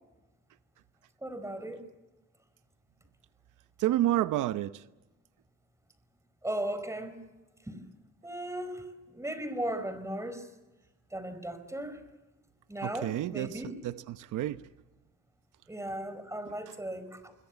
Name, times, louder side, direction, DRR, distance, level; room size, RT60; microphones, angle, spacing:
voice 1, 1.2-1.8 6.4-7.2 7.7-7.8 8.2-10.5 11.1-12.0 12.7-13.8 15.7-17.3, right 1 dB, 10° right, 4.9 m, -37 dB
voice 2, 3.8-4.8 12.8-13.5 14.1-14.6, right 14 dB, 85° right, 0.9 m, -29 dB
27.5 x 22.0 x 7.3 m
cardioid pair, 90°, 30 cm